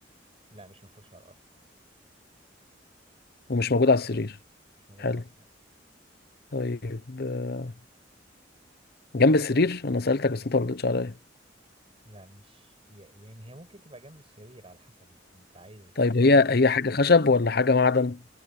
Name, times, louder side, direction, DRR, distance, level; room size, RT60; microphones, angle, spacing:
voice 1, 0.5-1.4 4.9-5.4 12.0-16.5, right 1 dB, 30° right, 6.7 m, -51 dB
voice 2, 3.5-4.4 5.0-5.2 6.5-7.7 9.1-11.1 16.0-18.2, left 3 dB, 55° left, 0.9 m, -22 dB
head